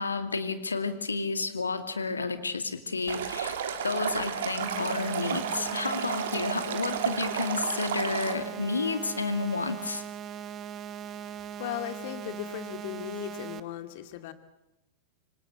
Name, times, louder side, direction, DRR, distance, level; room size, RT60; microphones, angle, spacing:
voice 1, 0.0-3.6 3.8-10.0, left 4 dB, 75° left, 10 dB, 2.4 m, -31 dB
Stream, 3.1-8.3, right 8 dB, 60° right, 3.1 m, -32 dB
sound 1, 4.6-13.6, right 8 dB, 30° right, 1.5 m, -40 dB
voice 2, 11.6-14.3, left 12 dB, 50° left, 10 dB, 2.3 m, -37 dB
26.0 x 25.5 x 8.2 m, 0.92 s
figure-of-eight pair, 90°, 0 cm